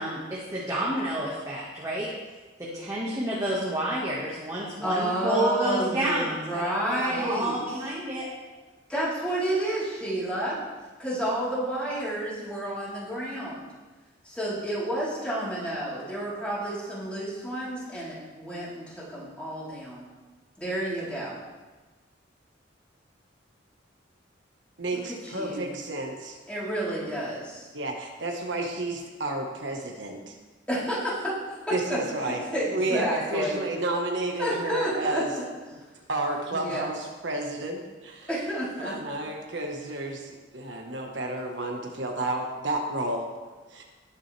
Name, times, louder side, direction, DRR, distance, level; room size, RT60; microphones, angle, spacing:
voice 1, 0.0-2.1 2.6-8.3, right 1 dB, 15° right, -7 dB, 1.7 m, -29 dB
voice 2, 4.8-7.9 8.9-10.6 11.0-13.6 14.2-20.1 20.6-21.4 24.9-25.7 26.5-27.7 30.7-33.6 34.4-35.4 36.5-36.9 38.3-39.0, right 1 dB, 5° left, -9 dB, 3.9 m, -30 dB
voice 3, 24.8-26.4 27.7-30.3 31.7-32.4 32.7-35.3 35.7-35.8 36.1-38.3 38.8-43.3 43.7-43.8, right 2 dB, 70° right, 1 dB, 1.5 m, -31 dB
19.0 x 7.5 x 3.4 m, 1.3 s
head